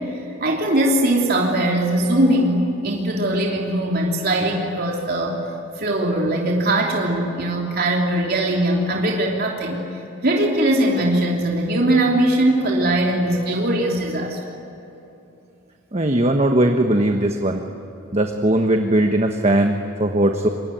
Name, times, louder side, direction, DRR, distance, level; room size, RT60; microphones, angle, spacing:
voice 1, 0.0-5.4 5.8-9.8 10.2-14.6, right 1 dB, 50° right, -1 dB, 3.2 m, -20 dB
voice 2, 15.9-17.6 18.1-20.5, right 1 dB, 35° right, 4 dB, 1.3 m, -19 dB
27.5 x 23.5 x 9.4 m, 2.9 s
head